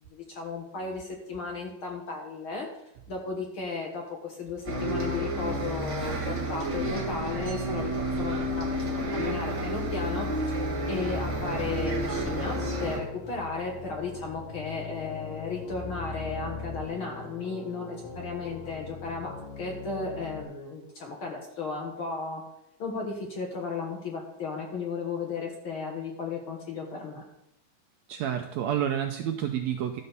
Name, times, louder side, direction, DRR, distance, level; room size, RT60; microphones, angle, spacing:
voice 1, 0.1-2.7 3.1-7.9 8.2-10.6 10.9-22.4 22.8-27.2, left 4 dB, 50° left, 0 dB, 1.8 m, -35 dB
Bus, 4.6-13.0, right 1 dB, 25° right, 0.7 m, -30 dB
sound 1, 10.8-20.4, left 5 dB, 70° left, 2.1 m, -40 dB
voice 2, 28.1-30.0, right 10 dB, 80° right, 5 dB, 1.6 m, -29 dB
12.5 x 4.2 x 6.7 m, 0.82 s
omnidirectional pair, 3.6 m